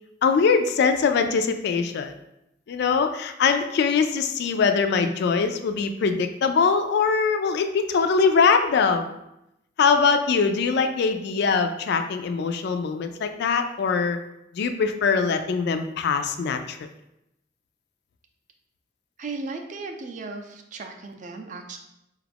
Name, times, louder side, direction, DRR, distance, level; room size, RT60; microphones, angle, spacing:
voice 1, 0.2-2.1 2.7-9.1 9.8-14.2 14.5-16.9, left 5 dB, 55° left, 7 dB, 0.3 m, -22 dB
voice 2, 19.2-21.8, right 3 dB, 40° right, 4 dB, 0.4 m, -36 dB
4.2 x 2.4 x 3.4 m, 0.86 s
head